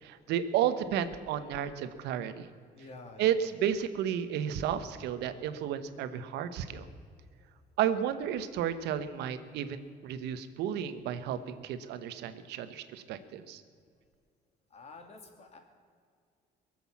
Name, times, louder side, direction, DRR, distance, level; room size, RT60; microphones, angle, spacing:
voice 1, 0.0-2.5 3.2-6.9 7.8-13.6, right 9 dB, 85° right, 11 dB, 1.1 m, -32 dB
voice 2, 2.7-3.4 14.7-15.6, left 3 dB, 40° left, 4 dB, 2.8 m, -49 dB
22.0 x 7.9 x 7.3 m, 2.2 s
cardioid pair, 110°, 17 cm